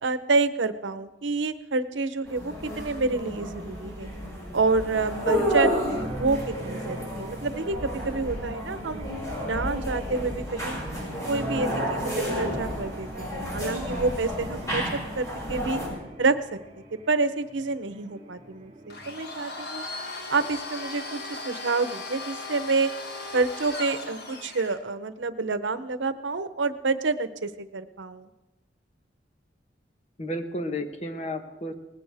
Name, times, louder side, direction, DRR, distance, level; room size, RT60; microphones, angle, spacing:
voice 1, 0.0-4.1 4.5-9.0 9.4-10.8 11.3-12.1 12.4-15.8 16.2-16.6 16.9-19.8 20.3-22.9 23.3-28.3, right 3 dB, 90° right, 12 dB, 0.8 m, -28 dB
sound 1, 2.3-15.9, equal, 20° left, 5.9 m, -31 dB
sound 2, 5.8-19.1, equal, 35° right, 3.0 m, -42 dB
Domestic sounds home sounds, 18.9-24.8, left 2 dB, 60° left, 1.8 m, -37 dB
voice 2, 30.2-31.7, left 1 dB, 35° left, 7 dB, 1.1 m, -32 dB
19.5 x 15.5 x 3.5 m, 1.1 s
head